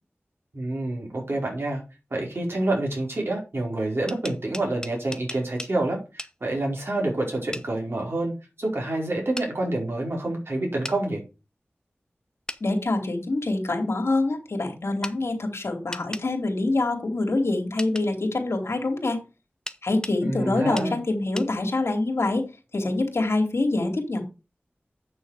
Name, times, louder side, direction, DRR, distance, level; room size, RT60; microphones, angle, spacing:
voice 1, 0.5-1.8 2.1-11.2 20.2-21.0, right 2 dB, 60° right, 0 dB, 4.8 m, -28 dB
sound 1, 3.9-5.7 6.2-6.3 7.5-7.7 9.4-9.5 10.8-11.0 12.5-12.6 15.0-15.2 15.9-16.3 17.8-18.1 19.7-20.2 20.8-20.9 21.4-21.5, left 1 dB, 15° left, 0.9 m, -36 dB
voice 2, 12.6-19.2 19.8-22.5 22.7-24.2, left 2 dB, 75° left, 2 dB, 3.0 m, -25 dB
9.0 x 6.6 x 5.0 m, 0.30 s
wide cardioid pair, 50°, 4 cm